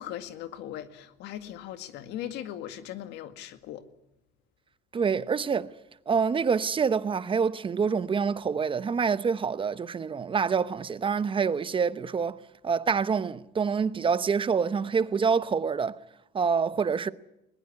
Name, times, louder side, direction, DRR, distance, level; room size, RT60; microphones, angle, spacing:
voice 1, 0.0-3.8, left 11 dB, 90° left, 2.0 m, -39 dB
voice 2, 4.9-5.7 6.1-12.4 12.6-16.0 16.3-17.1, right 6 dB, 30° right, 0.9 m, -26 dB
21.5 x 20.0 x 9.7 m
cardioid pair, 110°, 17 cm